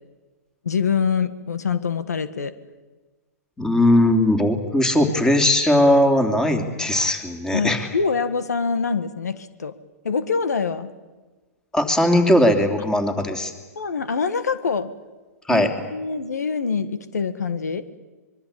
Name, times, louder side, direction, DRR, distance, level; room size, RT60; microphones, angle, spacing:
voice 1, 0.6-2.5 7.5-9.7 10.0-10.9 13.7-14.9 15.5-17.8, left 5 dB, 85° left, 13 dB, 1.6 m, -25 dB
voice 2, 3.6-7.9 11.7-13.5 15.5-15.7, left 1 dB, 5° left, 6 dB, 3.0 m, -19 dB
25.0 x 22.5 x 8.7 m, 1.3 s
hypercardioid pair, 130°, 9 cm